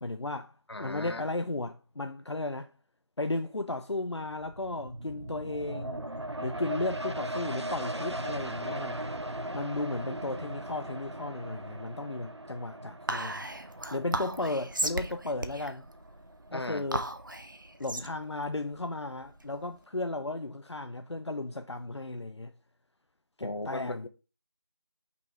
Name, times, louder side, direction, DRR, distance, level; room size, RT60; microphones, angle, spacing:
voice 1, 0.0-0.5 0.8-2.7 3.2-6.0 6.4-9.0 9.5-13.4 13.9-15.9 16.5-17.1 17.8-22.5 23.4-24.1, left 2 dB, 85° left, 0.7 m, -35 dB
voice 2, 0.7-1.2 16.5-16.8 23.4-24.1, left 2 dB, 65° left, 1.1 m, -37 dB
sound 1, 4.2-17.4 17.8-17.9, right 1 dB, 85° right, 1.0 m, -39 dB
Whispering, 13.1-19.7, right 1 dB, 50° right, 0.8 m, -36 dB
5.8 x 3.9 x 4.8 m
figure-of-eight pair, 170°, 14 cm